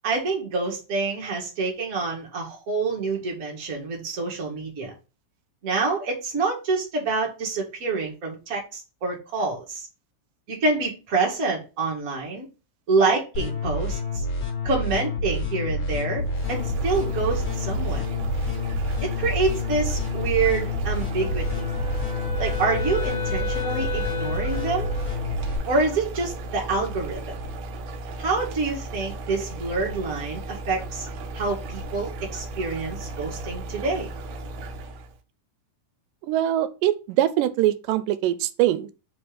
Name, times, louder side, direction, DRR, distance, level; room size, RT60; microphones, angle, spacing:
voice 1, 0.0-4.9 5.6-9.9 10.5-12.5 12.9-14.0 14.6-18.0 19.0-21.6 22.4-24.9 25.7-27.4 28.2-31.1 31.3-34.1, right 3 dB, 35° right, 1.8 m, -27 dB
sound 1, 13.3-25.6, left 2 dB, 45° left, 1.9 m, -28 dB
sound 2, 16.2-35.1, right 2 dB, 70° right, 1.8 m, -36 dB
Wind instrument woodwind instrument, 21.2-25.3, left 3 dB, 75° left, 1.7 m, -34 dB
voice 2, 36.3-38.9, right 13 dB, 90° right, 2.2 m, -23 dB
5.0 x 4.3 x 5.0 m
omnidirectional pair, 3.8 m